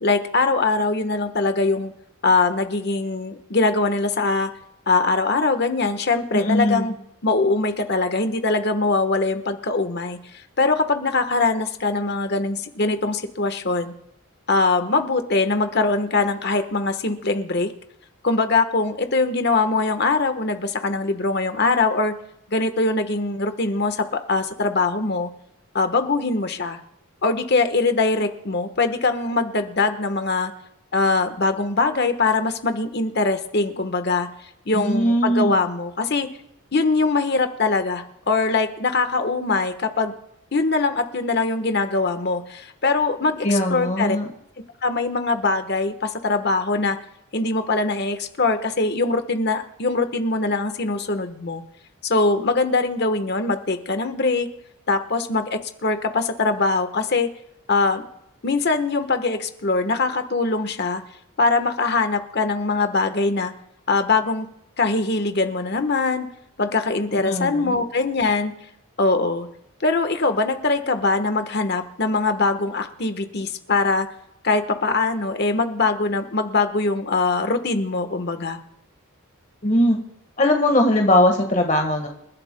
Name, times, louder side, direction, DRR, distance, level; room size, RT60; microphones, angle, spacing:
voice 1, 0.0-1.9 2.2-4.5 4.9-6.9 7.2-10.2 10.6-13.9 14.5-17.7 18.2-22.1 22.5-25.3 25.7-26.8 27.2-30.5 30.9-34.3 34.7-36.3 36.7-40.1 40.5-44.2 44.8-47.0 47.3-51.6 52.0-54.5 54.9-57.3 57.7-58.1 58.4-61.0 61.4-63.5 63.9-64.5 64.8-66.3 66.6-68.5 69.0-69.5 69.8-74.1 74.4-78.6, left 3 dB, 50° left, 8 dB, 1.2 m, -22 dB
voice 2, 6.3-6.9 34.7-35.7 43.4-44.3 67.1-67.8 79.6-80.0 80.4-82.1, left 1 dB, 35° left, 3 dB, 1.4 m, -20 dB
28.5 x 11.5 x 2.2 m, 0.78 s
head